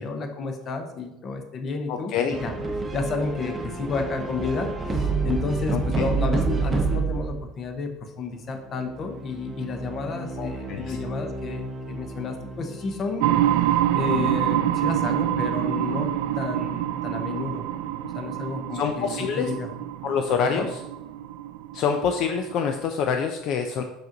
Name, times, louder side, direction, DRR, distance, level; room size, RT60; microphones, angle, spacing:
voice 1, 0.0-2.5 2.9-16.1 16.4-17.6 18.0-19.7 20.5-20.7, left 4 dB, 35° left, 6 dB, 0.9 m, -31 dB
voice 2, 1.9-2.4 5.7-6.0 10.4-11.0 18.7-19.5 20.0-20.8 21.7-23.8, left 6 dB, 50° left, 5 dB, 0.5 m, -26 dB
sound 1, 2.3-7.5 8.7-13.6, right 4 dB, 15° right, 0.7 m, -29 dB
sound 2, 13.2-22.8, right 12 dB, 85° right, 0.4 m, -26 dB
5.9 x 5.3 x 3.9 m, 0.92 s
cardioid pair, 145°, 0 cm